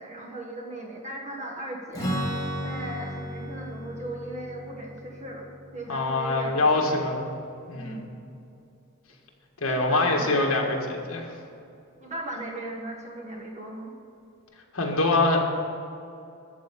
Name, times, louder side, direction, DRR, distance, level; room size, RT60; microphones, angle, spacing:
voice 1, 0.0-2.2 2.6-5.5 5.7-7.0 7.7-8.1 9.6-10.5 12.0-13.9, right 1 dB, 30° right, 0 dB, 1.6 m, -37 dB
Strum, 1.9-7.6, equal, 15° left, 2.5 m, -35 dB
voice 2, 5.9-7.3 7.7-8.0 9.6-11.3 14.7-15.4, left 2 dB, 65° left, 0 dB, 1.7 m, -24 dB
13.5 x 4.7 x 8.4 m, 2.5 s
head